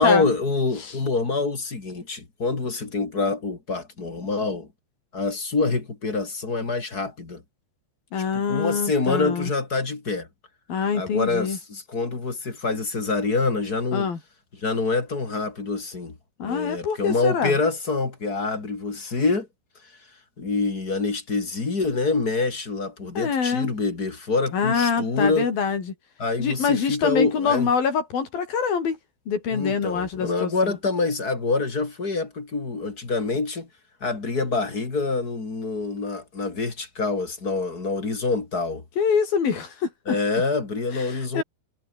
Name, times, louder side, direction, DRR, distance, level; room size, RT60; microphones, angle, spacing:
voice 1, 0.0-4.7 5.1-7.4 8.5-10.3 10.9-14.1 14.6-19.5 20.4-25.5 26.2-27.7 29.5-33.7 34.0-38.8 40.1-41.4, left 3 dB, 25° left, 3.5 m, -26 dB
voice 2, 8.1-9.5 10.7-11.6 13.9-14.2 16.4-17.6 23.2-23.7 24.5-25.9 26.4-29.0 29.3-30.8 39.0-40.2 40.9-41.4, left 6 dB, 80° left, 5.9 m, -25 dB
omnidirectional pair, 4.1 m